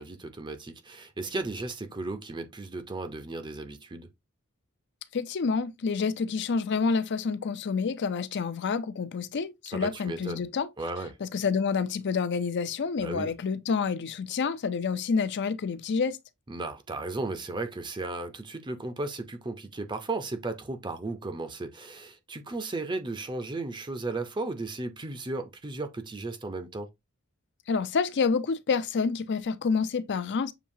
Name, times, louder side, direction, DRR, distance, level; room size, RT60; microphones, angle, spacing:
voice 1, 0.0-4.1 9.7-10.4 10.8-11.2 13.0-13.3 16.5-26.9, right 2 dB, 20° right, 0.5 m, -35 dB
voice 2, 5.1-10.7 11.2-16.2 27.7-30.5, left 5 dB, 50° left, 0.5 m, -28 dB
6.9 x 2.8 x 2.6 m
head